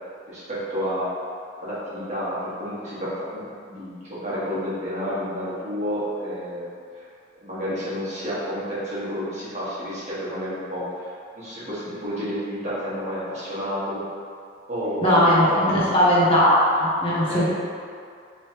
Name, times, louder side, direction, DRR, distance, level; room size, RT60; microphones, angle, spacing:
voice 1, 0.3-1.1 1.6-6.7 6.9-7.0 7.3-11.1 11.4-14.0 14.7-15.9 17.3-17.5, equal, 35° right, -11 dB, 1.3 m, -30 dB
voice 2, 15.0-17.4, equal, 25° left, -8 dB, 0.6 m, -19 dB
3.1 x 3.0 x 4.4 m, 2.3 s
head